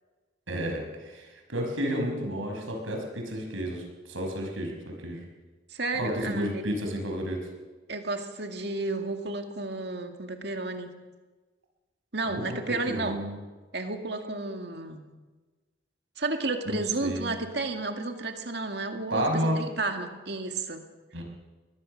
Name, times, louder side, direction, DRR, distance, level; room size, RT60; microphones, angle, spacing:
voice 1, 0.5-5.2 5.9-7.5 12.3-12.6 12.9-13.4 16.7-17.3 19.1-19.6 21.1-21.2, equal, 85° right, 2 dB, 5.6 m, -31 dB
voice 2, 5.7-6.6 7.9-10.9 12.1-13.2 13.7-15.1 16.2-20.8, right 3 dB, 55° right, 5 dB, 2.1 m, -32 dB
22.5 x 19.5 x 6.5 m, 1.3 s
head